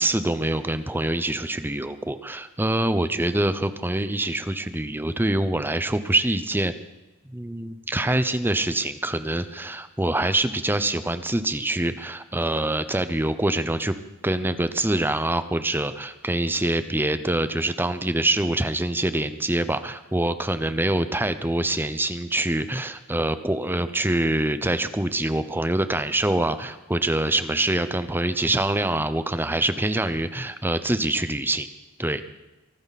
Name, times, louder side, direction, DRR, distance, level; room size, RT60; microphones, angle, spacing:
voice 1, 0.0-6.7 7.3-13.9 14.2-31.7 32.0-32.2, right 1 dB, 10° right, 12 dB, 0.8 m, -25 dB
24.0 x 12.5 x 4.2 m, 1.1 s
head